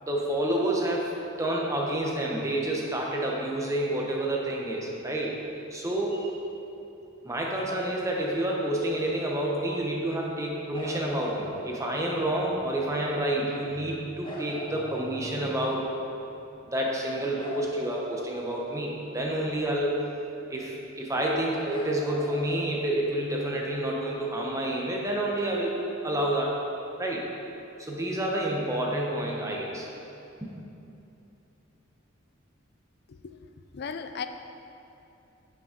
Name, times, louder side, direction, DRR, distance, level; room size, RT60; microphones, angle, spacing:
voice 1, 0.0-5.4 5.7-6.4 7.2-15.9 16.7-20.0 20.5-25.8 26.0-26.5 27.0-27.2 27.8-29.9 30.4-30.5, right 1 dB, 15° right, -2 dB, 0.8 m, -29 dB
sound 1, 10.7-12.2 14.2-15.9 17.4-19.3 21.7-23.4 25.5-25.6, left 1 dB, 25° left, 1.1 m, -42 dB
voice 2, 33.7-34.3, left 6 dB, 50° left, 9 dB, 0.4 m, -36 dB
6.8 x 6.0 x 5.1 m, 2.8 s
head